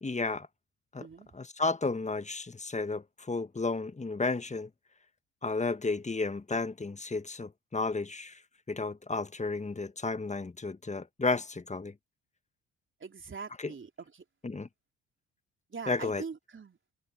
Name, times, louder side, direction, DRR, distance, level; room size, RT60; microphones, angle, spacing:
voice 1, 0.0-0.5 0.9-1.1 1.3-4.7 5.4-8.4 8.7-11.9 13.6-13.7 14.4-14.7 15.9-16.2, left 3 dB, 20° left, 1.6 m, -32 dB
voice 2, 1.0-1.4 13.0-14.2 15.7-16.8, right 5 dB, 35° right, 3.5 m, -43 dB
hypercardioid pair, 50°, 36 cm